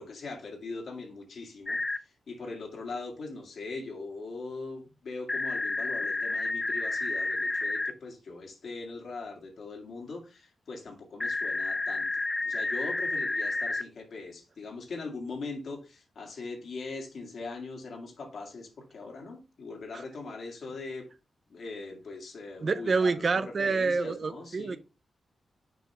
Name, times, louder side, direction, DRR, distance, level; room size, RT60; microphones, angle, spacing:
voice 1, 0.0-12.1 12.4-21.0 21.5-24.8, left 3 dB, 70° left, 1.9 m, -41 dB
sound 1, 1.7-2.0 5.3-7.9 11.2-13.8, left 3 dB, 30° left, 0.4 m, -30 dB
voice 2, 22.6-24.8, right 4 dB, 55° right, 0.5 m, -27 dB
6.3 x 4.8 x 3.2 m
cardioid pair, 60°, 0 cm